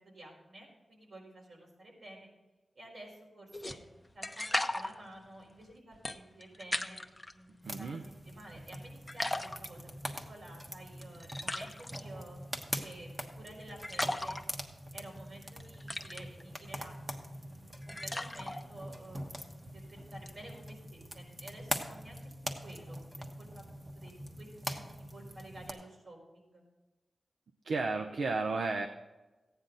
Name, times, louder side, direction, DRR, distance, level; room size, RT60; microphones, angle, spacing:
voice 1, 0.0-2.3 2.8-3.8 4.1-7.0 7.3-12.4 12.8-13.1 13.4-14.4 14.9-22.2 22.6-26.6, right 1 dB, 65° right, -2 dB, 4.3 m, -52 dB
sound 1, 3.5-7.3 7.8-8.7 9.1-20.8, left 1 dB, 15° left, 0.8 m, -40 dB
sound 2, 7.6-25.7, equal, 25° right, 1.3 m, -43 dB
voice 2, 7.6-8.0 27.6-28.9, right 3 dB, 80° right, 6 dB, 0.7 m, -33 dB
15.0 x 9.6 x 3.9 m, 1.1 s
wide cardioid pair, 75°, 0 cm